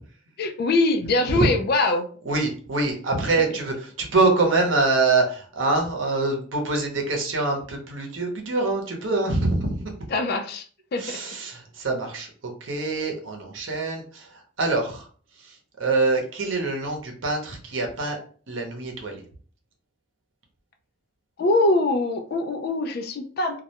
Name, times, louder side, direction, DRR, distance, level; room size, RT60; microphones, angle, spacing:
voice 1, 0.4-2.1 10.1-10.7 10.9-11.2 21.4-23.6, left 2 dB, 50° left, 6 dB, 0.3 m, -23 dB
voice 2, 2.3-9.9 11.0-12.3 12.6-15.1 15.4-15.5 15.8-18.2 18.5-19.2, right 3 dB, 80° right, 1 dB, 0.7 m, -25 dB
2.3 x 2.1 x 2.8 m, 0.42 s
head